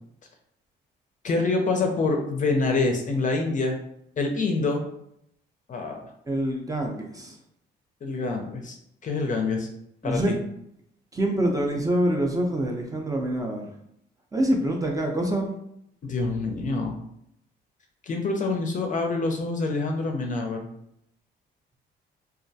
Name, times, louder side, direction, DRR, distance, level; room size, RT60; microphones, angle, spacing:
voice 1, 1.2-3.8 4.2-4.8 5.7-6.1 8.0-8.8 9.0-9.7 10.0-10.4 16.0-17.0 18.0-20.6, left 3 dB, 40° left, 3 dB, 0.4 m, -26 dB
voice 2, 6.3-7.4 10.0-10.4 11.1-13.6 14.3-15.5, right 1 dB, 15° right, 1 dB, 0.4 m, -25 dB
2.2 x 2.1 x 2.6 m, 0.74 s
cardioid pair, 90°, 20 cm